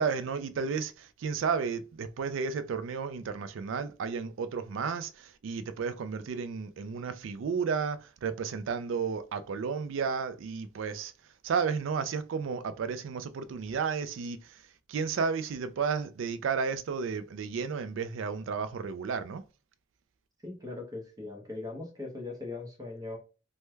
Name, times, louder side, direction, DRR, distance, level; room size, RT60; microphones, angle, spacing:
voice 1, 0.0-11.1 11.4-19.4, right 5 dB, 65° right, 0.3 m, -32 dB
voice 2, 20.4-23.2, left 2 dB, 20° right, 0.7 m, -40 dB
3.1 x 2.1 x 3.3 m
head